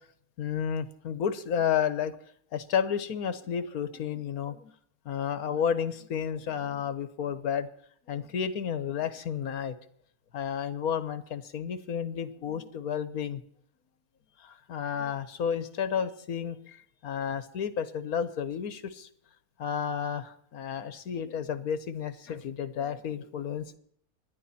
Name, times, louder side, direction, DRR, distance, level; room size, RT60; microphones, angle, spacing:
voice 1, 0.4-2.1 2.5-4.7 5.0-7.7 8.1-9.7 10.3-13.4 14.4-16.8 17.0-19.1 19.6-23.8, left 8 dB, 75° left, 13 dB, 1.6 m, -31 dB
25.5 x 11.0 x 4.3 m, 0.66 s
omnidirectional pair, 1.6 m